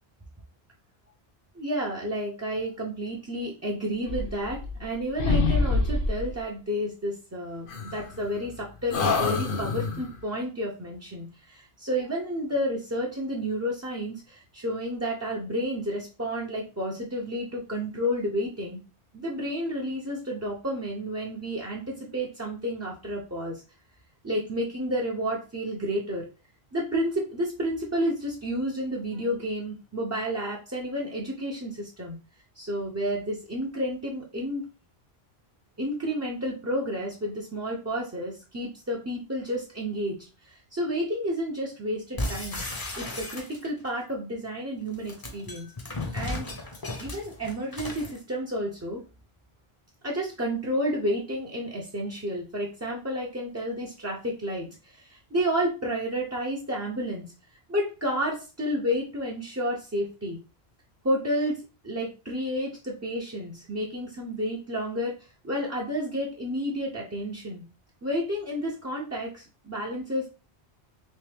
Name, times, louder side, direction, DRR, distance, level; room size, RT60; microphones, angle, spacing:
voice 1, 1.5-18.8 19.1-23.6 24.2-26.3 26.7-32.2 32.6-34.6 35.8-42.6 43.0-45.7 46.1-46.5 47.0-49.0 50.0-57.3 57.7-60.4 61.0-65.2 65.4-67.6 68.0-70.3, equal, 20° right, -3 dB, 0.4 m, -31 dB
sound 1, 4.0-4.9 5.2-6.3 7.7-8.5 8.9-10.2, left 3 dB, 60° left, 0.8 m, -26 dB
sound 2, 42.2-43.9 44.9-48.2, left 2 dB, 25° left, 0.6 m, -35 dB
3.2 x 3.0 x 3.3 m, 0.33 s
omnidirectional pair, 1.1 m